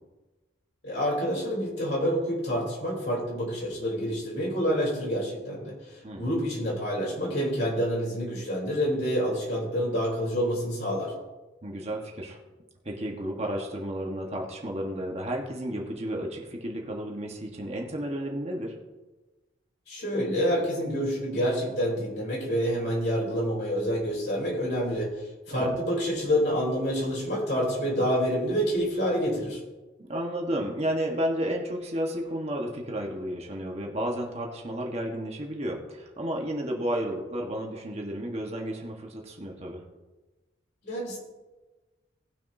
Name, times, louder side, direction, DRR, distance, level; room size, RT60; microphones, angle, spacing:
voice 1, 0.8-5.7 6.2-11.1 19.9-25.1 25.5-29.6 40.8-41.2, equal, 60° left, -2 dB, 3.6 m, -27 dB
voice 2, 6.0-6.4 11.6-12.4 12.8-18.8 25.5-25.8 30.0-39.8, equal, 35° right, 0 dB, 1.4 m, -32 dB
18.5 x 6.4 x 2.8 m, 1.2 s
head